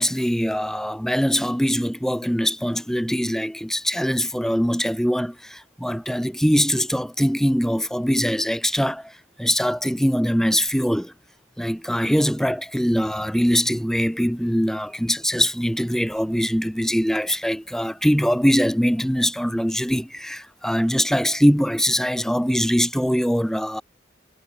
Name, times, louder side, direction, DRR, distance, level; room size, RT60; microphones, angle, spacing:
voice 1, 0.0-9.1 9.4-11.1 11.6-23.8, equal, ahead, 2.9 m, -22 dB
head